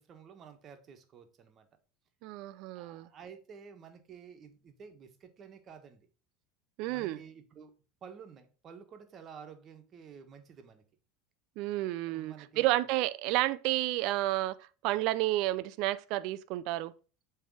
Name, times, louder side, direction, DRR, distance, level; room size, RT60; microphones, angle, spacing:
voice 1, 0.0-1.7 2.7-6.1 6.9-7.7 8.0-10.8 12.1-12.7, right 6 dB, 40° right, 1.3 m, -51 dB
voice 2, 2.2-3.1 6.8-7.2 11.6-14.6 14.8-16.9, right 17 dB, 60° right, 0.4 m, -31 dB
7.8 x 3.3 x 4.8 m
hypercardioid pair, 95°, 0 cm